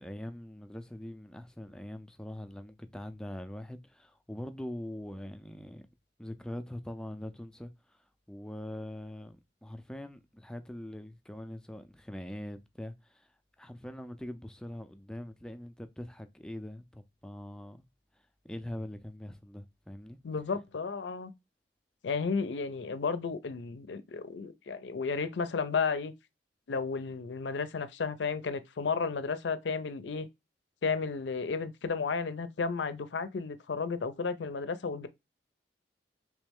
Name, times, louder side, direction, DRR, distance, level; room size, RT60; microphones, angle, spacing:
voice 1, 0.0-5.9 6.2-8.0 8.3-13.3 13.6-17.8 18.4-20.2, left 1 dB, 5° left, 0.4 m, -43 dB
voice 2, 20.2-21.3 22.0-26.1 26.7-30.3 30.8-35.1, left 5 dB, 90° left, 0.5 m, -33 dB
3.2 x 3.1 x 3.4 m
head